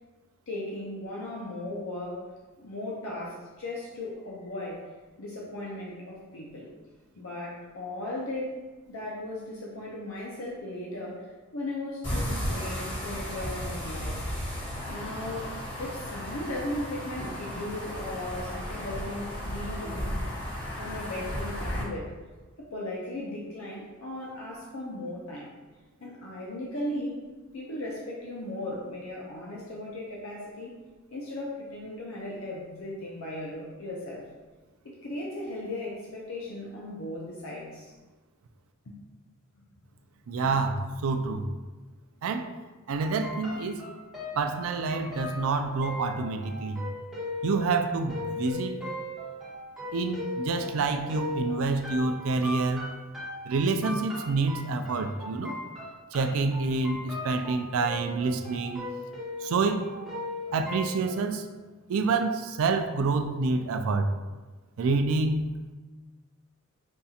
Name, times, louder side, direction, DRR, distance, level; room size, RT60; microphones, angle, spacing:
voice 1, 0.5-2.2 2.6-4.8 5.2-6.7 7.2-8.6 8.9-14.3 14.9-20.2 20.8-22.1 22.6-25.5 26.0-27.2 27.5-30.8 31.1-34.3 34.8-37.9 38.9-39.0, left 1 dB, 70° left, -4 dB, 0.6 m, -37 dB
sound 1, 12.0-21.8, equal, 25° left, 1.1 m, -34 dB
voice 2, 40.3-41.5 42.2-42.5 42.9-43.8 44.4-46.8 47.4-48.8 49.9-52.9 53.5-55.6 56.1-58.8 59.4-59.9 60.5-61.4 61.9-64.1 64.8-65.5, right 4 dB, 75° right, 7 dB, 0.4 m, -27 dB
sound 2, 43.0-61.3, left 2 dB, ahead, 1.0 m, -38 dB
5.3 x 2.4 x 2.7 m, 1.3 s
head